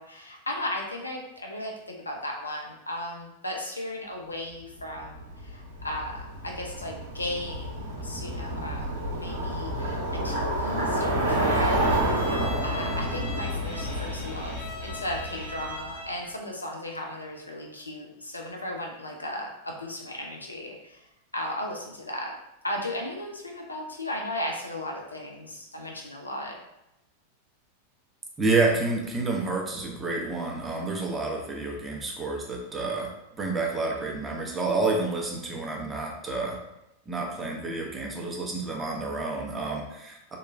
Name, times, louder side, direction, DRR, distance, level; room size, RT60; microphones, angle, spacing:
voice 1, 0.0-12.0 12.6-21.1 21.3-22.3 22.6-26.6, left 1 dB, 80° left, 1 dB, 0.4 m, -36 dB
Bicycle, 5.0-15.9, right 1 dB, 70° right, 0.8 m, -29 dB
Bowed string instrument, 11.8-16.3, left 2 dB, 65° left, 1.1 m, -40 dB
voice 2, 28.4-33.1 33.4-36.6 37.1-40.4, right 3 dB, 15° right, -1 dB, 0.6 m, -29 dB
2.9 x 2.3 x 2.5 m, 0.89 s
figure-of-eight pair, 90°, 0 cm